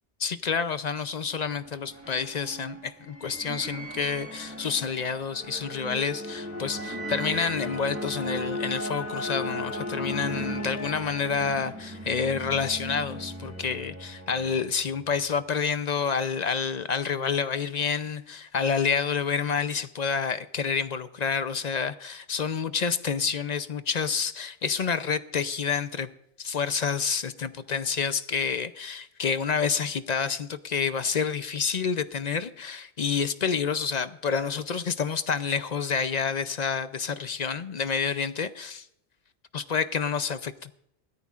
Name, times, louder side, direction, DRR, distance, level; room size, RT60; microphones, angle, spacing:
voice 1, 0.2-26.1 26.4-38.9 39.5-40.7, left 6 dB, 50° left, 12 dB, 0.6 m, -28 dB
sound 1, 1.6-15.1, equal, 10° right, 1.7 m, -36 dB
20.5 x 13.5 x 2.4 m, 0.78 s
omnidirectional pair, 1.2 m